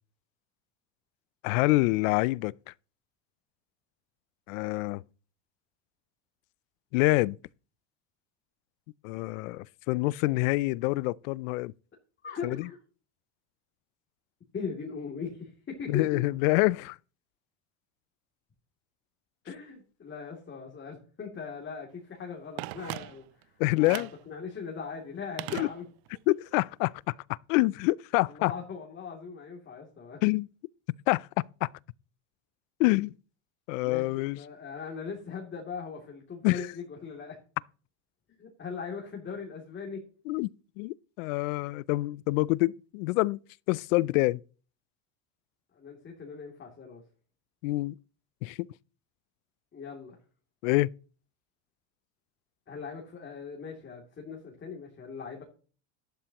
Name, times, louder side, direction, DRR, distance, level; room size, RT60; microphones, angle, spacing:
voice 1, 1.4-2.5 4.5-5.0 6.9-7.4 9.0-11.7 12.4-12.6 15.9-17.0 23.6-24.1 25.5-25.7 26.3-26.9 27.5-28.5 30.2-30.5 31.1-31.3 31.6-31.7 32.8-33.1 33.7-34.4 36.4-36.7 40.3-40.5 40.8-43.4 43.7-44.4 47.6-47.9 48.4-48.6 50.6-50.9, left 21 dB, 85° left, 0.5 m, -26 dB
voice 2, 12.2-12.8 14.5-16.2 19.4-25.8 28.2-30.2 33.8-37.4 38.4-40.0 45.7-47.0 49.7-50.2 52.7-55.4, left 5 dB, 30° left, 2.8 m, -40 dB
Telephone, 22.6-23.4 23.8-24.3 25.4-26.2 26.5-26.6, right 19 dB, 70° right, 0.6 m, -39 dB
12.5 x 11.5 x 3.0 m
supercardioid pair, 115°, 38 cm